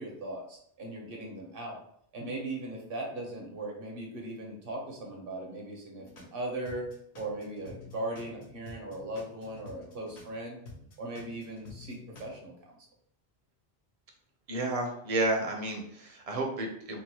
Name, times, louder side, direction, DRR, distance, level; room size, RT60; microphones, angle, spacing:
voice 1, 0.0-1.8 2.1-6.9 7.1-10.6 11.0-12.8, right 1 dB, 60° right, 0 dB, 1.0 m, -38 dB
sound 1, 6.0-6.3 6.6-10.3 10.6-12.4, left 2 dB, 85° left, 1.1 m, -50 dB
voice 2, 14.5-17.0, right 2 dB, 40° right, 2 dB, 0.6 m, -31 dB
3.8 x 2.1 x 2.8 m, 0.67 s
omnidirectional pair, 1.1 m